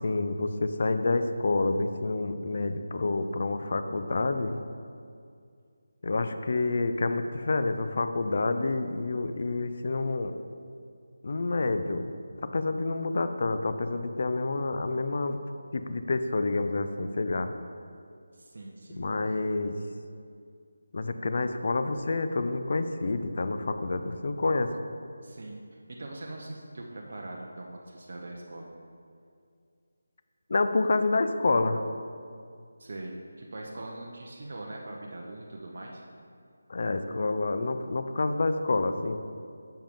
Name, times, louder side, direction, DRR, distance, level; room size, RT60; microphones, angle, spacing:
voice 1, 0.0-4.6 6.0-10.3 11.2-12.1 12.5-15.4 15.7-17.5 19.0-19.8 20.9-24.7 30.5-31.8 36.7-39.2, left 3 dB, 50° left, 9 dB, 0.5 m, -28 dB
voice 2, 18.3-19.1 25.2-28.7 32.8-36.0, right 2 dB, 50° right, -1 dB, 0.8 m, -42 dB
7.5 x 6.9 x 3.6 m, 2.3 s
figure-of-eight pair, 170°, 0 cm